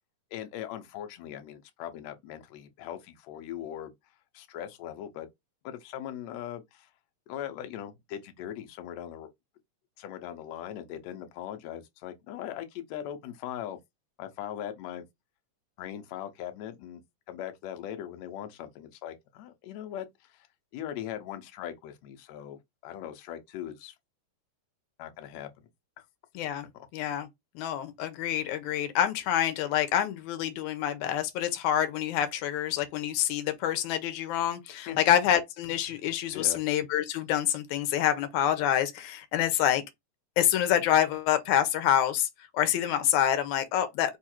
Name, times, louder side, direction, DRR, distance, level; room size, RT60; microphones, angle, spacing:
voice 1, 0.3-3.9 4.3-5.3 5.6-6.9 7.3-9.3 10.0-13.8 14.2-15.0 15.8-17.0 17.3-20.5 20.7-24.0 25.0-25.7 26.7-26.9 34.9-35.0 36.3-36.6, left 11 dB, 75° left, 1.9 m, -40 dB
voice 2, 26.4-26.7 26.9-27.3 27.6-39.8 40.4-44.2, left 11 dB, 90° left, 2.1 m, -27 dB
4.7 x 2.4 x 4.3 m
omnidirectional pair, 3.4 m